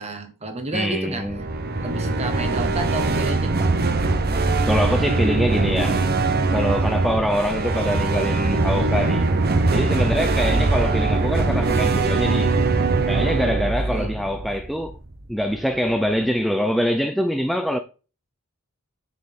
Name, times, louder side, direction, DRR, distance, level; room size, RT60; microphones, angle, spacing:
voice 1, 0.0-1.4 1.8-3.9 10.0-10.4 13.9-14.4, right 2 dB, 30° right, 1.3 m, -31 dB
voice 2, 0.7-1.4 4.7-6.1 6.5-9.3 9.7-12.5 13.1-15.0 15.3-17.8, equal, ahead, 0.4 m, -24 dB
sound 1, 1.2-15.2, right 3 dB, 45° right, 0.9 m, -21 dB
7.4 x 6.4 x 3.6 m
head